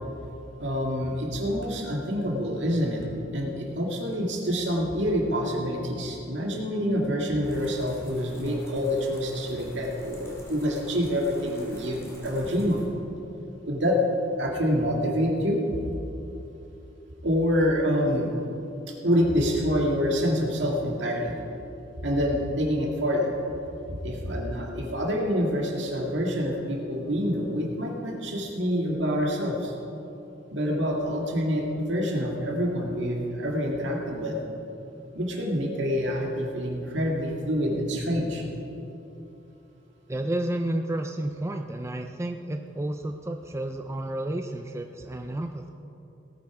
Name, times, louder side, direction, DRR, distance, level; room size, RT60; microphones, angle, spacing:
voice 1, 0.6-3.0 3.3-12.9 13.7-14.0 14.4-15.6 17.2-18.3 19.0-21.3 22.0-23.3 24.0-29.7 30.5-34.4 35.1-38.4, equal, 65° right, 0 dB, 2.1 m, -27 dB
sound 1, 7.4-12.9, equal, 15° left, 2.5 m, -46 dB
voice 2, 40.1-45.7, right 1 dB, 15° right, 5 dB, 0.4 m, -31 dB
18.0 x 8.9 x 4.8 m, 2.9 s
head